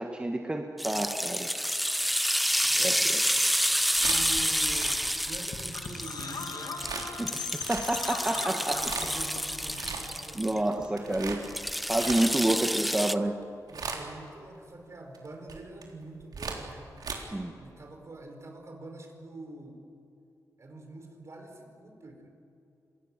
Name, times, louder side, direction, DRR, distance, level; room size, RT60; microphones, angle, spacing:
voice 1, 0.0-1.5 2.7-3.2 7.2-7.4 7.7-8.8 10.3-11.4 11.9-13.3 17.3-17.5, right 1 dB, 15° right, 2 dB, 1.6 m, -29 dB
sound 1, 0.8-10.6 11.4-13.1, equal, ahead, 0.7 m, -29 dB
voice 2, 2.6-3.6 4.0-6.8 8.3-10.8 13.7-16.9 17.5-19.8 20.6-22.3, right 2 dB, 45° right, 4 dB, 5.0 m, -45 dB
sound 2, 3.7-5.8 6.8-7.1 7.5-8.1 8.6-9.2 9.6-10.4 10.7-12.7 13.2-13.4 13.7-14.3 15.1-17.1, right 5 dB, 75° right, 3.9 m, -38 dB
sound 3, 4.1-10.4 10.6-11.7, left 5 dB, 75° left, 2.5 m, -41 dB
29.5 x 26.0 x 7.5 m, 2.6 s
wide cardioid pair, 120°, 7 cm